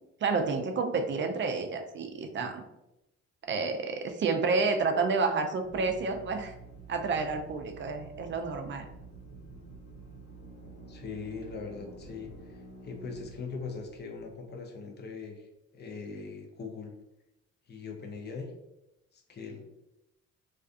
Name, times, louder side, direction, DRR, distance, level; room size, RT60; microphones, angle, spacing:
voice 1, 0.2-2.6 3.5-6.6 6.9-8.9, right 4 dB, 40° right, 5 dB, 0.4 m, -30 dB
Drill, 5.6-14.2, right 3 dB, 65° left, 1.2 m, -49 dB
voice 2, 10.9-15.5 15.7-16.9 17.7-18.5 19.1-19.7, left 4 dB, 35° left, 2 dB, 0.6 m, -41 dB
2.4 x 2.4 x 2.4 m, 0.89 s
cardioid pair, 90°, 30 cm